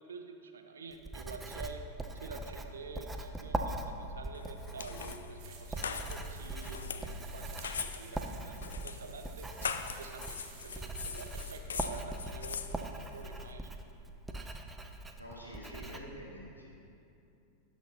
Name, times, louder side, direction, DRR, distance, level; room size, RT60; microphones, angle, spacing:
voice 1, 0.0-1.8 2.1-9.5 10.0-13.7, right 4 dB, 70° right, 5 dB, 0.6 m, -48 dB
Writing, 0.9-16.0, right 2 dB, 10° right, 0.5 m, -41 dB
sound 1, 4.3-13.5, left 6 dB, 65° left, 0.3 m, -42 dB
sound 2, 5.4-11.6, right 8 dB, 40° right, 0.8 m, -55 dB
voice 2, 15.2-16.7, equal, 85° left, -4 dB, 1.5 m, -47 dB
11.5 x 4.1 x 4.1 m, 2.7 s
figure-of-eight pair, 90°, 0 cm